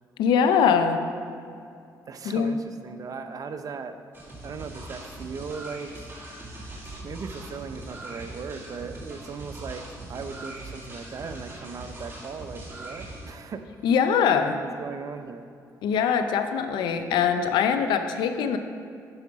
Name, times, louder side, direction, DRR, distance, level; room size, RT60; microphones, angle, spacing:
voice 1, 0.2-1.0 2.2-2.5 13.8-14.6 15.8-18.6, left 7 dB, 80° left, 8 dB, 0.6 m, -22 dB
voice 2, 2.1-4.0 4.4-5.9 7.0-13.7 14.5-15.5, right 5 dB, 50° right, 8 dB, 0.7 m, -38 dB
sound 1, 4.1-13.3, right 1 dB, 30° right, 2.1 m, -41 dB
9.6 x 4.9 x 4.7 m, 2.4 s
supercardioid pair, 70°, 8 cm